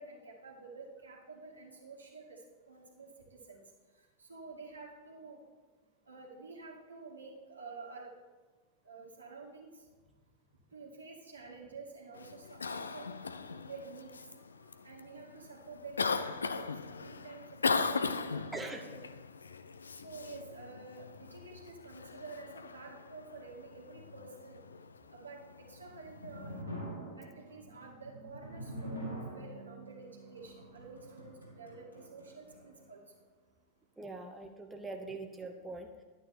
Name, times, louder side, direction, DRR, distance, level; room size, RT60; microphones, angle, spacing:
voice 1, 0.0-2.4 2.7-3.6 4.2-5.4 6.1-8.1 8.9-9.7 10.7-13.2 13.5-14.1 14.8-19.0 20.0-24.6 25.1-26.5 27.2-33.0, right 4 dB, 80° right, -2 dB, 2.3 m, -50 dB
Cough, 12.1-26.6, left 4 dB, 75° left, 0.5 m, -39 dB
voice 2, 18.5-18.8 34.0-36.0, right 3 dB, 10° right, 3 dB, 0.9 m, -43 dB
sound 1, 25.6-32.9, right 1 dB, 90° left, 3.1 m, -45 dB
11.0 x 9.4 x 4.4 m, 1.3 s
figure-of-eight pair, 90°, 0 cm